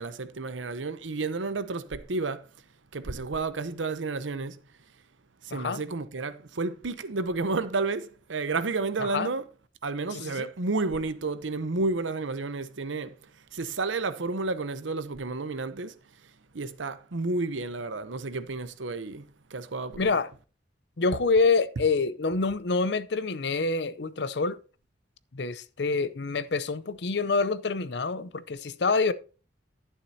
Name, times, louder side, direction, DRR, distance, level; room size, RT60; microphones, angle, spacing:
voice 1, 0.0-2.5 2.9-4.6 5.4-9.5 9.8-15.9 16.5-20.2, right 3 dB, 90° right, 0.8 m, -31 dB
voice 2, 10.1-10.5 20.0-20.3 21.0-24.6 25.3-29.1, left 4 dB, 65° left, 0.6 m, -26 dB
11.0 x 9.8 x 2.8 m
head